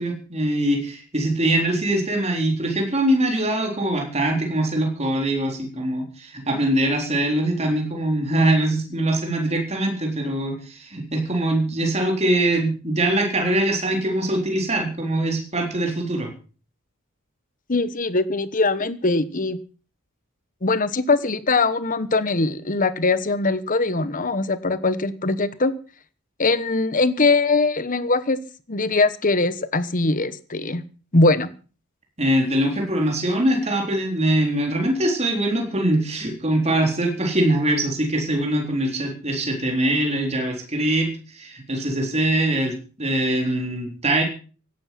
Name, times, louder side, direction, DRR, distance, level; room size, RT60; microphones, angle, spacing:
voice 1, 0.0-16.3 32.2-44.2, right 1 dB, 30° right, 2 dB, 3.9 m, -23 dB
voice 2, 17.7-19.6 20.6-25.7 26.4-28.4 28.7-30.8 31.1-31.5, left 3 dB, 35° left, 14 dB, 1.1 m, -21 dB
17.0 x 11.5 x 5.9 m, 0.39 s
head